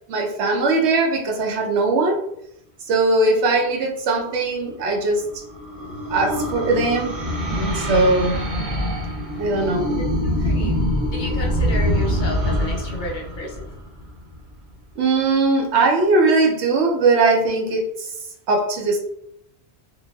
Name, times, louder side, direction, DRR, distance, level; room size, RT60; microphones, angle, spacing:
voice 1, 0.1-2.2 2.8-5.2 6.1-7.1 7.5-8.3 9.3-9.9 11.8-11.9 15.0-18.1 18.5-19.0, right 3 dB, 85° right, 0 dB, 0.9 m, -20 dB
sound 1, 4.8-14.3, equal, 50° right, 0.9 m, -24 dB
voice 2, 10.0-10.8 11.1-13.7, left 2 dB, 55° left, -1 dB, 0.6 m, -32 dB
3.1 x 2.1 x 2.3 m, 0.75 s
omnidirectional pair, 1.1 m